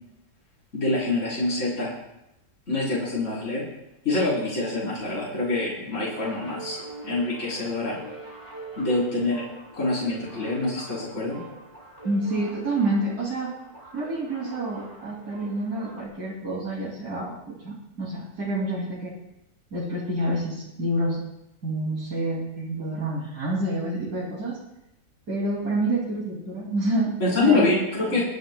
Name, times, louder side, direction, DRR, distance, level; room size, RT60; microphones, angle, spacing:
voice 1, 0.7-1.9 2.7-3.6 4.0-6.8 7.0-8.0 8.8-9.4 9.8-11.4 27.2-28.2, left 2 dB, 45° left, -7 dB, 4.5 m, -25 dB
sound 1, 6.0-16.1, right 2 dB, 25° right, 3.2 m, -43 dB
voice 2, 12.0-13.5 13.9-19.1 19.7-21.2 21.6-24.6 25.3-27.6 28.0-28.2, right 1 dB, 65° right, -6 dB, 3.4 m, -28 dB
30.0 x 10.5 x 2.3 m, 0.87 s
omnidirectional pair, 1.8 m